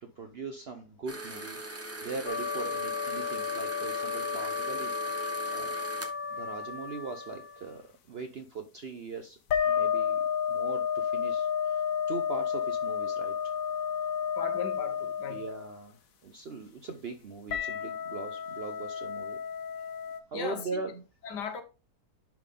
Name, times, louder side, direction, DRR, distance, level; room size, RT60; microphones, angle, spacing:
voice 1, 0.0-1.6 2.0-5.2 5.5-5.8 6.3-9.4 9.6-10.2 10.5-11.8 12.1-13.5 15.3-19.4 20.3-21.0, right 4 dB, 55° right, 0.7 m, -40 dB
sound 1, 1.1-6.1, right 2 dB, 15° right, 0.6 m, -41 dB
sound 2, 2.3-7.6 9.5-15.8 17.5-20.2, left 7 dB, 60° left, 1.2 m, -32 dB
voice 2, 14.4-15.4 20.3-20.8 21.2-21.6, left 7 dB, 80° left, 1.8 m, -37 dB
10.5 x 3.7 x 3.6 m
omnidirectional pair, 1.8 m